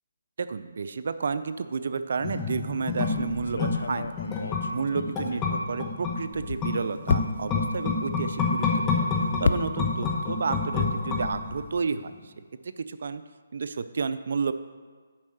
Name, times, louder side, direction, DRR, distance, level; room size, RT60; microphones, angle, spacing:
voice 1, 0.4-4.1 4.7-9.1 9.4-12.3 12.6-13.2 13.5-14.5, right 5 dB, 60° right, 12 dB, 0.4 m, -31 dB
sound 1, 2.2-11.8 12.1-12.2, left 4 dB, 15° left, 1.0 m, -29 dB
sound 2, 3.1-5.8 6.2-10.2 10.5-11.8, left 4 dB, 65° left, 0.4 m, -33 dB
7.2 x 5.3 x 6.4 m, 1.5 s
hypercardioid pair, 155°, 0 cm